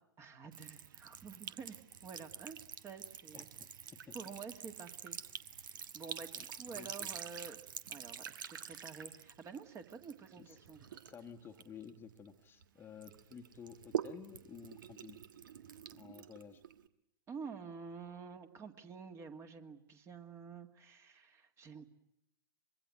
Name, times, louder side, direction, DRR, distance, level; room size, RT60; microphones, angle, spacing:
voice 1, 0.2-3.5 4.1-7.6 7.9-11.0 17.3-21.8, right 5 dB, 25° right, 7 dB, 2.2 m, -49 dB
Sink (filling or washing) / Trickle dribble, 0.5-12.6 13.0-16.9, right 9 dB, 60° right, 1.4 m, -46 dB
voice 2, 3.3-4.1 6.3-6.5 6.7-7.1 10.4-10.6 11.0-15.2 15.9-16.6, left 7 dB, 20° left, 5 dB, 1.4 m, -53 dB
25.0 x 22.5 x 9.5 m, 0.79 s
figure-of-eight pair, 105°, 12 cm